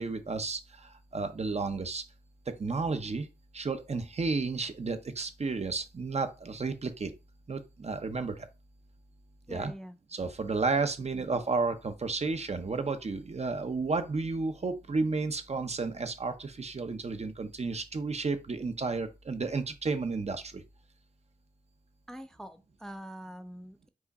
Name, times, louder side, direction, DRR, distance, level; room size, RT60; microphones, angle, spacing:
voice 1, 0.0-2.0 2.5-3.3 3.5-7.1 7.5-8.5 9.5-9.7 10.1-20.6, right 4 dB, 45° right, 0.7 m, -32 dB
voice 2, 9.5-10.0 22.1-23.9, equal, 5° left, 0.4 m, -44 dB
4.7 x 2.5 x 4.1 m
cardioid pair, 55°, 16 cm